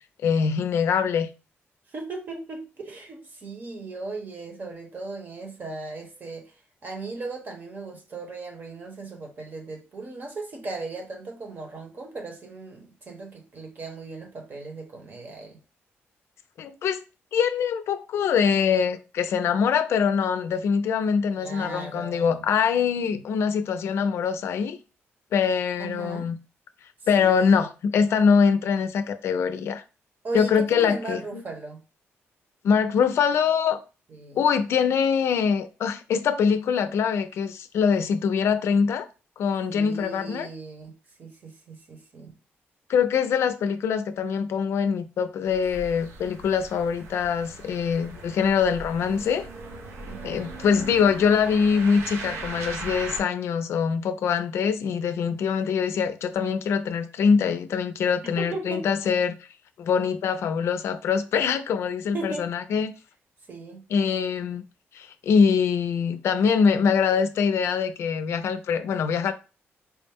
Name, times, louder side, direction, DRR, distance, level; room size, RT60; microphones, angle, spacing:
voice 1, 0.2-1.3 16.6-17.0 17.3-24.8 25.3-26.4 27.1-29.8 30.3-31.4 32.6-33.8 34.4-39.1 39.4-40.5 42.9-49.4 50.2-59.4 59.8-62.9 63.9-64.6 64.9-69.3, left 6 dB, 75° left, 0.4 m, -23 dB
voice 2, 1.9-6.5 6.8-15.6 21.4-22.4 25.8-26.3 27.2-27.7 30.2-31.8 34.1-34.4 39.7-40.9 41.2-42.3 50.0-50.4 58.3-58.8 62.1-62.5 63.5-63.8, right 3 dB, 45° right, 1.0 m, -37 dB
sound 1, 45.4-53.2, right 3 dB, 85° right, 0.8 m, -39 dB
4.4 x 2.1 x 3.4 m
cardioid pair, 115°, 5 cm